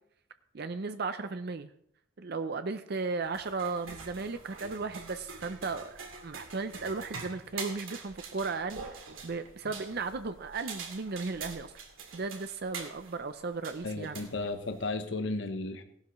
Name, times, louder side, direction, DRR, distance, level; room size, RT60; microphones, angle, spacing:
voice 1, 0.5-1.7 2.2-11.7 12.1-14.2, right 4 dB, 55° right, 9 dB, 0.6 m, -35 dB
sound 1, 3.2-14.9, right 5 dB, 85° right, 2.3 m, -45 dB
voice 2, 13.8-15.8, left 2 dB, 65° left, 7 dB, 0.9 m, -34 dB
17.0 x 12.0 x 3.1 m, 0.68 s
head